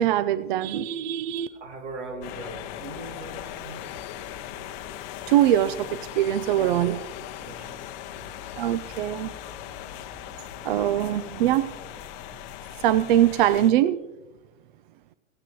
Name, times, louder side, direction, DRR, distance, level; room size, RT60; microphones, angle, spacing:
voice 1, 0.0-1.5 5.3-5.9 6.1-7.0 8.6-9.3 10.6-11.7 12.8-14.0, right 12 dB, 45° right, 15 dB, 0.4 m, -22 dB
voice 2, 1.5-4.0 6.6-6.8 7.4-7.9 8.1-8.4 9.7-9.8, right 2 dB, 65° right, 4 dB, 2.4 m, -40 dB
sound 1, 2.2-13.7, left 11 dB, 35° left, 0.7 m, -39 dB
17.0 x 9.0 x 3.1 m, 1.1 s
hypercardioid pair, 130°, 39 cm